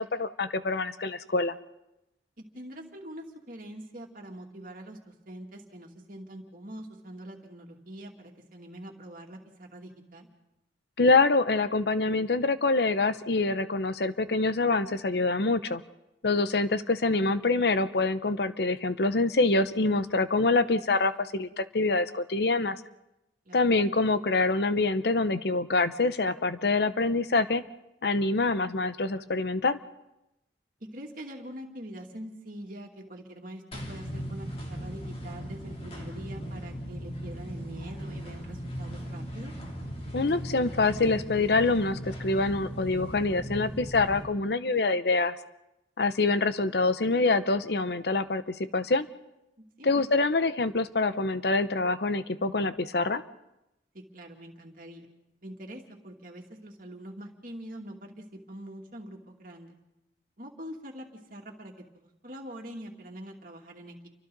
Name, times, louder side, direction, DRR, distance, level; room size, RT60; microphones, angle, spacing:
voice 1, 0.0-1.5 11.0-15.8 16.2-22.8 23.5-27.6 28.0-29.8 40.1-45.3 46.0-49.1 49.8-53.2, left 3 dB, 60° left, 12 dB, 0.8 m, -25 dB
voice 2, 2.4-10.3 23.4-23.7 30.9-39.5 49.8-50.1 53.9-55.1 55.4-59.8 60.4-64.1, right 1 dB, 50° right, 1 dB, 2.6 m, -44 dB
sound 1, 33.7-44.3, equal, 35° left, 3.1 m, -38 dB
29.5 x 24.5 x 4.0 m, 0.91 s
head